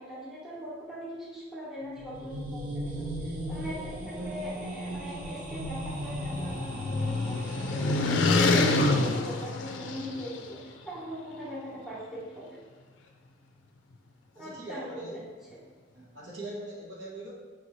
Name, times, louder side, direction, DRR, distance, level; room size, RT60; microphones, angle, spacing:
voice 1, 0.0-12.6 14.3-15.2 15.5-15.6, equal, 5° right, -8 dB, 0.9 m, -40 dB
sound 1, 1.8-8.8, right 1 dB, 45° right, 0.6 m, -37 dB
sound 2, 5.6-10.4, left 2 dB, 80° left, 0.4 m, -27 dB
voice 2, 14.3-15.2 15.9-17.3, right 1 dB, 80° right, -5 dB, 1.1 m, -41 dB
4.6 x 2.6 x 3.0 m, 1.4 s
head